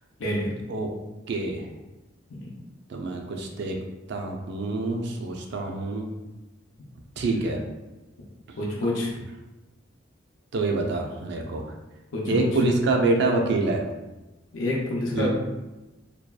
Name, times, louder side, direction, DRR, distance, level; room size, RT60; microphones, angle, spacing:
voice 1, 0.2-0.5 2.4-2.5 8.6-9.2 12.1-12.5 14.5-15.3, left 1 dB, 85° left, -3 dB, 0.5 m, -27 dB
voice 2, 1.3-1.7 2.9-3.8 4.1-6.1 7.2-7.6 8.8-8.9 10.5-11.6 12.2-13.8 15.1-15.3, right 2 dB, 65° right, 2 dB, 0.4 m, -26 dB
2.7 x 2.3 x 2.3 m, 1.0 s
head